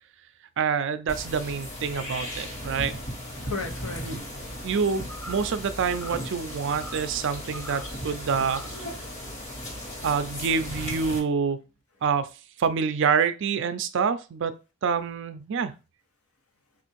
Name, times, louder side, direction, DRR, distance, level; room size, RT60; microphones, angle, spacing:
voice 1, 0.6-2.9 4.0-4.2 4.6-8.9 10.0-11.6 12.0-12.3 12.6-14.5 14.8-15.7, right 6 dB, 55° right, 0.4 m, -27 dB
sound 1, 1.1-11.2, equal, 35° left, 1.3 m, -36 dB
voice 2, 3.4-4.7 9.0-10.1, left 4 dB, 85° left, 0.9 m, -39 dB
sound 2, 5.1-5.5 5.9-6.3 6.7-7.1 7.5-7.9 8.4-8.8, equal, 5° left, 0.5 m, -42 dB
3.4 x 2.5 x 4.5 m
head